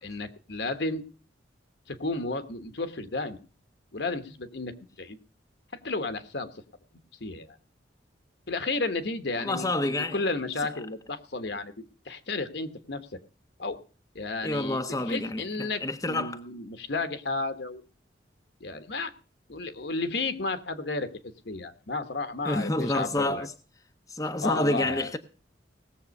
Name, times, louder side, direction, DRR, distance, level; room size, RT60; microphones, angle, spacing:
voice 1, 0.0-1.0 1.9-3.4 3.9-5.2 5.7-6.5 7.2-7.6 8.5-11.7 12.0-13.1 13.6-13.8 14.1-17.8 18.6-19.1 19.5-23.5 24.4-25.1, left 3 dB, 60° left, 1.3 m, -33 dB
voice 2, 9.4-10.3 14.4-16.4 22.4-23.5 24.1-25.2, left 1 dB, 15° left, 0.8 m, -28 dB
18.5 x 7.5 x 5.3 m
head